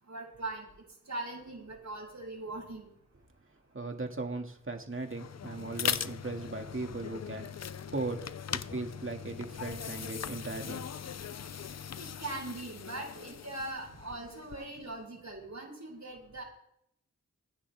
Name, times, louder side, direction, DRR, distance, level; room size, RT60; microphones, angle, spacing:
voice 1, 0.1-0.7 1.1-2.9 12.2-16.4, right 2 dB, 65° right, -4 dB, 7.1 m, -40 dB
voice 2, 3.7-10.9, right 3 dB, 40° right, 4 dB, 2.3 m, -38 dB
sound 1, 5.0-14.8, left 8 dB, 55° left, 0.5 m, -40 dB
25.5 x 9.8 x 3.5 m, 0.71 s
cardioid pair, 45°, 31 cm